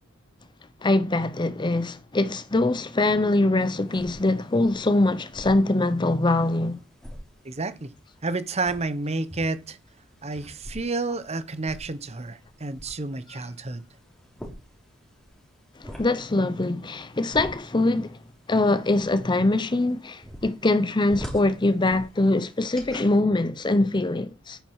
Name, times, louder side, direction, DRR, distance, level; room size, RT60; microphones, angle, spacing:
voice 1, 0.8-6.8 15.8-18.2 18.5-24.6, left 2 dB, 20° left, 0.6 m, -23 dB
sound 1, 3.6-23.1, equal, 5° left, 3.4 m, -46 dB
voice 2, 7.4-7.9 8.2-9.8 10.2-13.8, right 3 dB, 30° right, 0.9 m, -30 dB
9.1 x 9.1 x 4.8 m
head